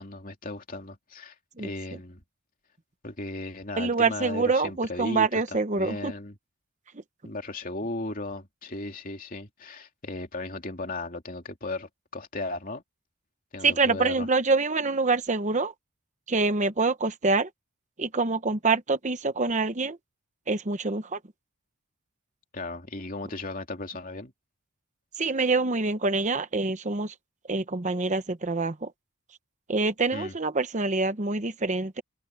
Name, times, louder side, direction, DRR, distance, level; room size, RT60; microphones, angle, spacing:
voice 1, 0.0-2.2 3.0-6.4 7.2-12.8 13.5-14.3 22.5-24.3 30.1-30.3, left 2 dB, 40° left, 2.9 m, -36 dB
voice 2, 3.8-6.1 13.6-15.7 16.3-17.5 18.0-20.0 20.5-21.2 25.2-27.1 27.5-28.9 29.7-32.0, right 3 dB, 35° right, 0.9 m, -26 dB
head